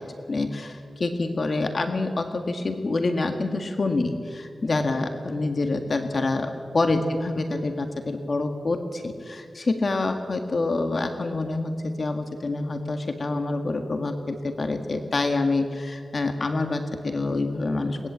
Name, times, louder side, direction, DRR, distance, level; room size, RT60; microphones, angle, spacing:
voice 1, 0.0-18.0, left 2 dB, 50° left, 6 dB, 1.8 m, -27 dB
22.0 x 20.0 x 8.4 m, 2.2 s
wide cardioid pair, 80°, 0 cm